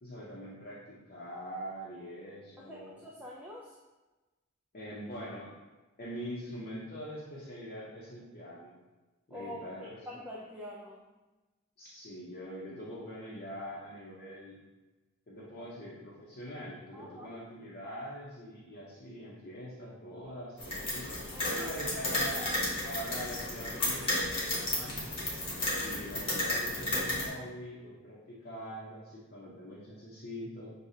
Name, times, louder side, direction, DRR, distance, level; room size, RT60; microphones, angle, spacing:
voice 1, 0.0-3.0 4.7-5.5 6.0-8.7 9.3-10.0 11.8-14.6 15.3-22.6 22.8-25.2 25.7-30.7, equal, 45° left, -8 dB, 0.8 m, -43 dB
voice 2, 2.6-3.8 9.3-11.0 16.9-17.3 21.3-21.7, left 1 dB, 10° right, -5 dB, 0.4 m, -45 dB
sound 1, 20.6-27.3, left 1 dB, 25° left, 1.1 m, -33 dB
6.4 x 2.3 x 2.7 m, 1.1 s
head